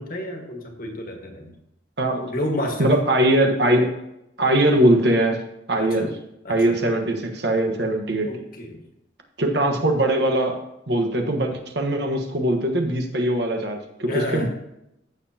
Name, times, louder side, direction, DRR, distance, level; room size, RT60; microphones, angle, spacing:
voice 1, 0.0-1.5 2.2-2.9 5.8-6.1 6.4-6.6 8.2-8.8 9.4-9.5 14.0-14.5, left 1 dB, 50° left, 2 dB, 1.6 m, -30 dB
voice 2, 2.8-4.0 4.4-5.4 5.7-6.1 6.5-8.3 9.4-10.6 10.9-14.5, right 1 dB, 65° right, 3 dB, 1.3 m, -21 dB
14.5 x 6.9 x 2.9 m, 0.84 s
head